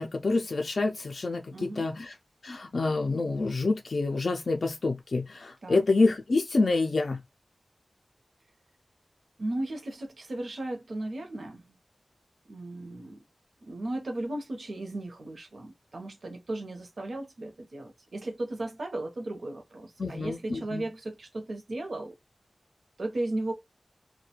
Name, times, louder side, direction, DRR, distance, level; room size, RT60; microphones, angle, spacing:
voice 1, 0.0-2.1 2.4-7.2 20.0-20.9, left 3 dB, 75° left, 0.3 m, -27 dB
voice 2, 1.5-1.9 5.6-5.8 9.4-11.6 12.5-13.2 13.7-22.1 23.0-23.5, right 2 dB, 75° right, 0.7 m, -35 dB
2.4 x 2.2 x 2.8 m
wide cardioid pair, 60°, 0 cm